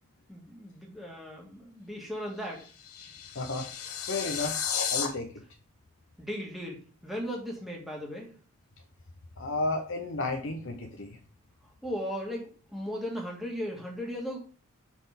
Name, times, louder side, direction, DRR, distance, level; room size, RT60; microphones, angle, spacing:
voice 1, 0.3-2.7 6.2-8.3 11.8-14.4, equal, ahead, -2 dB, 1.7 m, -37 dB
sound 1, 2.4-5.1, left 8 dB, 85° left, 1.2 m, -33 dB
voice 2, 3.3-3.7 4.1-4.6 4.9-5.3 9.4-11.2, left 2 dB, 60° left, 4 dB, 0.7 m, -32 dB
6.2 x 4.1 x 5.1 m, 0.39 s
head